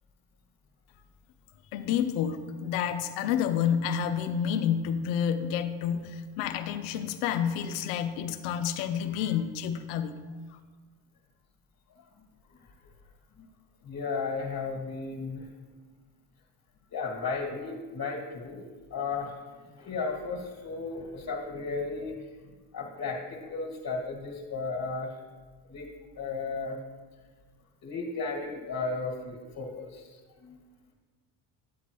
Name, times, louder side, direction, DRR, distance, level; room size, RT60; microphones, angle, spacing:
voice 1, 1.7-10.2, left 8 dB, 80° left, 10 dB, 0.8 m, -29 dB
voice 2, 13.8-15.5 16.9-19.4 19.7-22.2 22.7-25.1 25.7-25.9 26.2-26.8 27.8-30.6, left 4 dB, 45° left, -2 dB, 1.7 m, -34 dB
9.5 x 8.2 x 3.0 m, 1.4 s
supercardioid pair, 75°, 48 cm